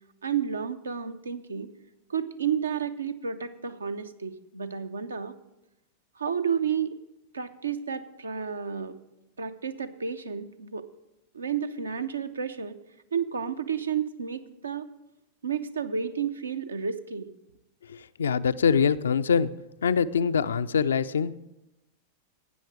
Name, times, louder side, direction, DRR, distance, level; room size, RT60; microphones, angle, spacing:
voice 1, 0.2-1.7 2.1-5.3 6.2-7.0 7.3-9.0 9.4-10.8 11.3-12.8 13.1-14.9 15.4-17.3, right 7 dB, 75° right, 10 dB, 0.7 m, -31 dB
voice 2, 18.2-19.5 19.8-21.4, left 6 dB, 70° left, 14 dB, 0.4 m, -23 dB
12.5 x 9.0 x 4.9 m, 0.92 s
figure-of-eight pair, 90°, 0 cm